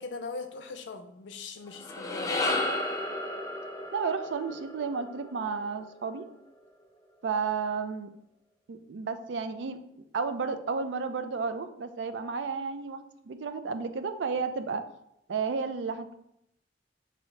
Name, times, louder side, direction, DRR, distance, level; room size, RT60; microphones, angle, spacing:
voice 1, 0.0-2.8, left 4 dB, 90° left, 6 dB, 0.5 m, -41 dB
sound 1, 1.7-6.1, left 2 dB, 20° left, 0.4 m, -33 dB
voice 2, 3.9-6.3 7.2-8.1 8.7-9.8 10.1-14.8 15.3-16.2, right 5 dB, 80° right, 9 dB, 0.4 m, -32 dB
6.1 x 2.7 x 3.2 m, 0.78 s
head